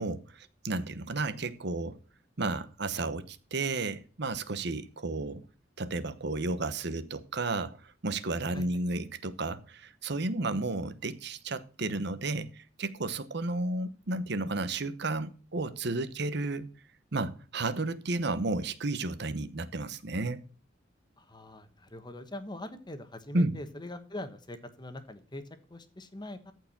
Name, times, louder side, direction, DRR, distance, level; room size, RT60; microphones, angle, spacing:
voice 1, 0.0-2.0 2.4-5.4 5.8-7.8 8.0-16.7 17.1-20.4 23.3-23.6, right 2 dB, 65° right, 1.0 m, -32 dB
voice 2, 21.2-25.4 25.7-26.5, left 1 dB, 25° left, 1.2 m, -42 dB
14.0 x 4.7 x 5.9 m
head